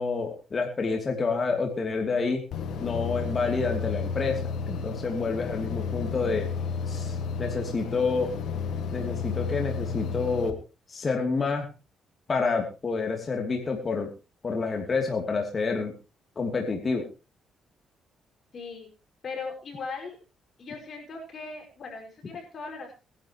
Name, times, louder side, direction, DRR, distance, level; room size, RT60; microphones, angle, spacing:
voice 1, 0.0-2.4 2.8-6.5 6.9-8.3 8.9-10.6 10.9-11.7 12.3-14.1 14.4-15.9 16.4-17.0, left 4 dB, 35° left, 2 dB, 2.9 m, -28 dB
sound 1, 2.5-10.5, left 5 dB, 75° left, 1.9 m, -32 dB
voice 2, 18.5-18.9 19.2-20.2 20.6-22.9, left 4 dB, 50° left, 2 dB, 5.5 m, -38 dB
22.0 x 11.0 x 3.1 m, 0.30 s
cardioid pair, 90°, 0 cm